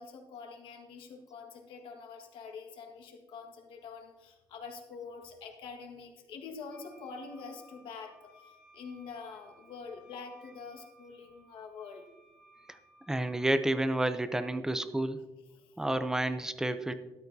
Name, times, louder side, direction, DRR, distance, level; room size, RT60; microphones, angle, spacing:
voice 1, 0.0-12.0 15.6-15.8, left 5 dB, 90° left, 3 dB, 1.6 m, -46 dB
Wind instrument woodwind instrument, 6.7-13.4, right 1 dB, 15° left, 2.4 m, -61 dB
voice 2, 13.1-15.2 15.8-16.9, right 1 dB, 5° right, 10 dB, 0.5 m, -30 dB
13.0 x 10.5 x 2.7 m, 1.1 s
cardioid pair, 170°, 9 cm